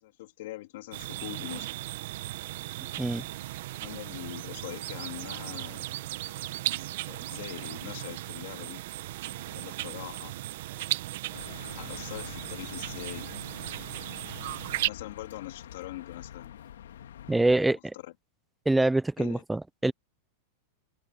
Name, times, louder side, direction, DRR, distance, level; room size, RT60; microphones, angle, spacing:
voice 1, 0.0-1.7 3.8-5.9 6.1-6.4 7.0-8.8 9.4-10.4 11.3-11.5 11.8-13.3 14.8-16.6 17.5-18.1 19.2-19.4, left 17 dB, 70° left, 3.2 m, -43 dB
sound 1, 0.9-14.9, right 16 dB, 70° right, 1.4 m, -36 dB
sound 2, 11.3-17.6, left 10 dB, 90° left, 2.2 m, -46 dB
voice 2, 17.3-17.8 18.7-19.9, right 2 dB, 5° right, 0.5 m, -25 dB
hypercardioid pair, 130°, 0 cm